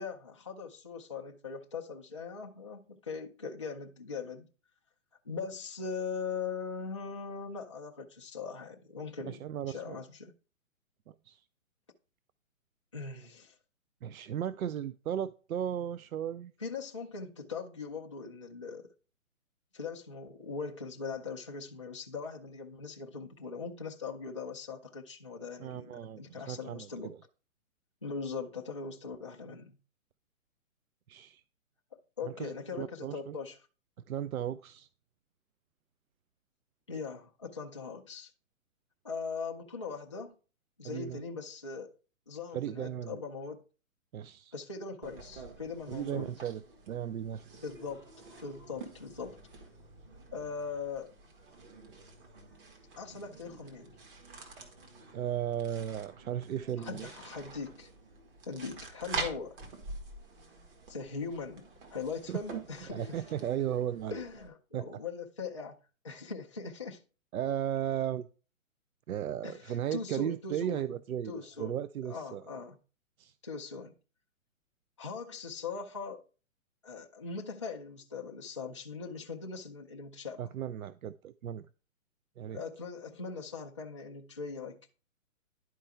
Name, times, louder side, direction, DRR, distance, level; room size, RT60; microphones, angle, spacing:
voice 1, 0.0-4.5 5.2-9.4 9.7-10.3 12.9-13.6 16.6-18.9 19.7-27.1 28.0-29.8 32.2-33.6 36.9-38.3 39.0-40.3 40.8-41.9 42.3-43.6 44.5-46.3 47.6-48.1 48.4-49.4 50.3-51.1 53.0-54.0 56.8-57.9 58.5-59.6 60.9-63.2 64.1-65.8 66.0-67.0 69.4-70.9 71.2-71.8 72.0-72.8 73.4-73.9 75.0-76.2 76.8-80.5 82.5-84.8, left 5 dB, 25° left, 0.3 m, -40 dB
voice 2, 9.3-10.0 11.3-11.4 14.0-16.5 25.6-27.1 31.1-31.4 32.2-33.4 34.1-34.9 40.8-41.2 42.5-43.2 44.1-44.5 45.9-46.6 46.9-47.6 55.1-57.1 62.3-62.6 62.9-64.2 64.7-64.9 67.3-68.3 69.1-72.4 73.2-73.3 80.4-81.6 82.4-82.6, right 10 dB, 90° right, 0.5 m, -35 dB
sound 1, 45.0-64.5, right 3 dB, 40° right, 1.7 m, -47 dB
11.0 x 4.6 x 3.4 m
hypercardioid pair, 150°, 41 cm